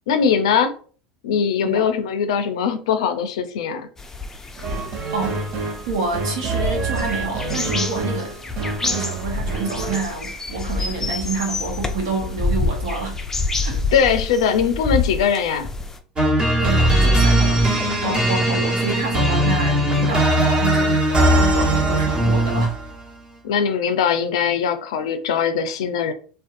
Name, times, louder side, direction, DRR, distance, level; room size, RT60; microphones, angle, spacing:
voice 1, 0.1-0.7 1.2-3.9 13.9-15.7 23.4-26.1, left 7 dB, 75° left, 0.4 m, -21 dB
voice 2, 1.5-1.9 5.1-5.4 5.9-13.2 13.6-13.9 16.6-17.7 18.0-22.8, right 4 dB, 75° right, 0.9 m, -28 dB
sound 1, 4.0-16.0, left 3 dB, 15° left, 0.4 m, -28 dB
sound 2, 4.6-10.0, right 3 dB, 50° right, 0.8 m, -28 dB
sound 3, 16.2-22.9, right 1 dB, 30° right, 1.1 m, -18 dB
2.6 x 2.2 x 2.5 m
hypercardioid pair, 85°, 3 cm